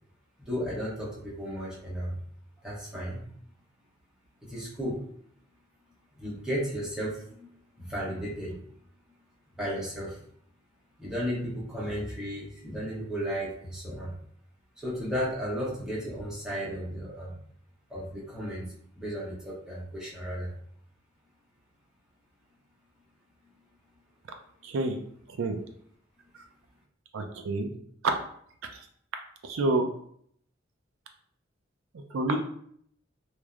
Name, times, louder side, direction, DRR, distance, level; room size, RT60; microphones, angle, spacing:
voice 1, 0.4-2.2 2.6-3.3 4.4-5.0 6.1-7.5 7.8-8.6 9.6-10.2 11.0-14.1 14.8-17.4 17.9-20.5, equal, 5° right, -7 dB, 0.7 m, -34 dB
voice 2, 24.6-25.0 25.4-25.6 27.1-27.7 29.4-29.9 32.1-32.4, right 2 dB, 85° right, 5 dB, 0.4 m, -28 dB
3.0 x 2.0 x 2.3 m, 0.64 s
head